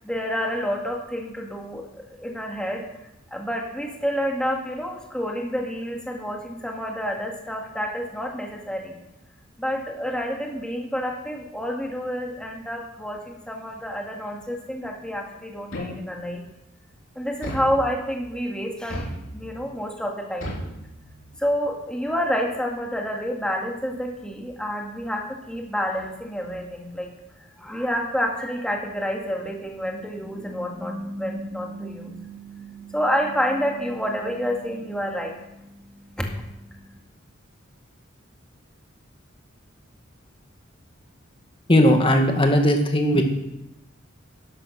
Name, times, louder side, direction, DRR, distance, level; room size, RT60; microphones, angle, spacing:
voice 1, 0.0-2.9 3.3-9.0 9.6-16.4 17.2-20.5 21.4-27.1 27.6-35.8 36.2-36.9, equal, 5° left, 1 dB, 1.9 m, -29 dB
sound 1, 15.7-16.4 17.4-18.3 18.9-19.7 20.4-21.4, equal, 70° left, 3.4 m, -35 dB
voice 2, 41.7-43.2, equal, 25° left, 4 dB, 1.7 m, -18 dB
11.0 x 11.0 x 6.4 m, 0.89 s
head